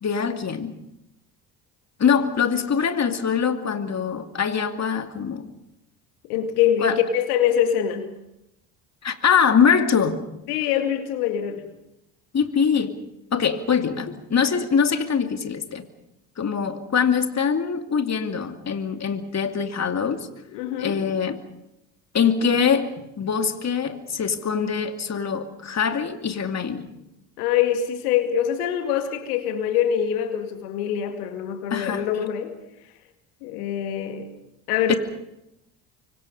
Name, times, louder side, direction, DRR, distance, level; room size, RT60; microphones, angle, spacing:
voice 1, 0.0-0.7 2.0-5.5 6.8-7.0 9.0-10.2 12.3-13.0 13.3-15.8 16.4-20.3 20.8-21.4 22.1-26.9 31.7-32.1 34.9-35.0, left 6 dB, 35° left, 6 dB, 2.6 m, -23 dB
voice 2, 6.3-8.1 10.5-11.7 20.5-21.0 27.4-32.6 33.4-34.3 34.7-35.0, left 9 dB, 80° left, 7 dB, 2.3 m, -24 dB
25.0 x 24.0 x 5.5 m, 0.85 s
hypercardioid pair, 60°, 45 cm